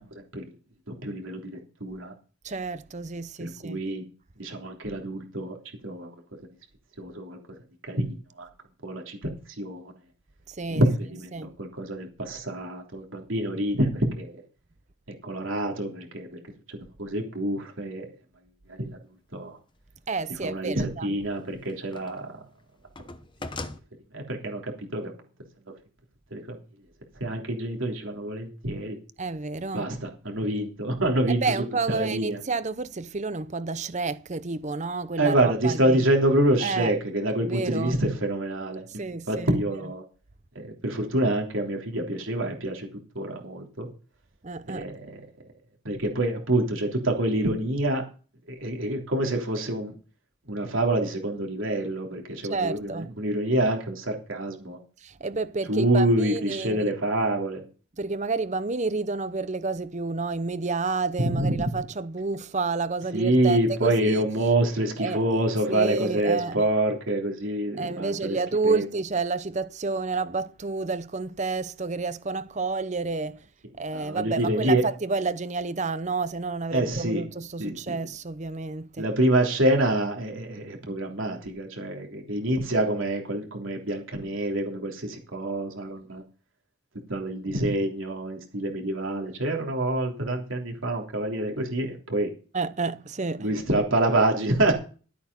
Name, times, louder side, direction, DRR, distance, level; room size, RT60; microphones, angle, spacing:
voice 1, 1.0-2.1 3.4-4.0 4.4-5.6 5.8-6.1 7.0-7.4 7.8-8.5 8.8-9.3 9.6-9.9 10.7-11.3 11.6-14.4 15.2-16.4 16.7-18.0 18.7-19.0 19.3-19.6 20.4-22.4 24.1-25.1 26.3-26.6 27.2-29.0 29.7-32.4 35.2-38.8 39.3-40.0 40.5-42.9 43.1-43.9 44.7-45.2 45.8-48.0 48.5-49.9 50.5-54.8 55.7-57.6 61.2-61.6 63.1-68.4 68.6-68.8 73.9-74.8 76.7-77.2 77.6-78.0 79.0-86.2 87.1-92.3 93.4-94.7, right 1 dB, 70° right, 3.4 m, -26 dB
voice 2, 2.4-3.8 10.5-10.8 11.3-11.6 20.1-21.2 29.2-29.9 31.3-36.1 36.6-37.0 37.5-38.0 38.9-39.5 44.4-44.9 52.5-53.2 55.0-56.8 58.0-64.2 65.0-65.2 65.7-66.7 67.8-73.4 73.8-79.1 92.5-93.5, right 3 dB, 35° right, 0.7 m, -30 dB
sound 1, 19.2-19.3 21.0-22.3 22.6-23.8, left 3 dB, 20° left, 0.8 m, -39 dB
12.5 x 8.7 x 5.4 m
head